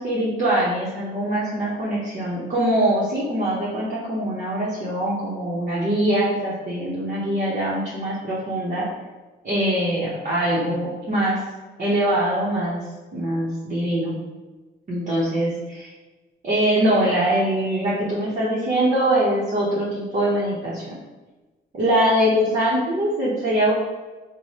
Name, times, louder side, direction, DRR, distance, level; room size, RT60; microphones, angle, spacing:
voice 1, 0.0-8.9 9.4-11.4 11.8-12.8 13.1-14.1 14.9-15.9 16.4-20.8 21.8-23.7, right 1 dB, 40° right, -8 dB, 1.0 m, -23 dB
3.1 x 2.3 x 4.1 m, 1.2 s
cardioid pair, 90°, 20 cm